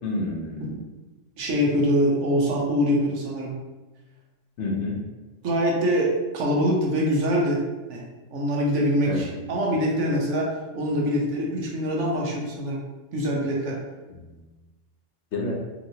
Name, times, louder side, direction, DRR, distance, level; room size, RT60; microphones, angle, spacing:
voice 1, 0.0-0.7 4.6-5.0 9.1-9.4 14.1-14.4 15.3-15.6, left 2 dB, 65° left, -1 dB, 0.9 m, -29 dB
voice 2, 1.4-3.6 5.4-7.6 7.9-8.0 8.3-12.8 13.1-13.8, equal, 70° right, -2 dB, 1.0 m, -24 dB
2.9 x 2.9 x 2.7 m, 1.2 s
omnidirectional pair, 1.3 m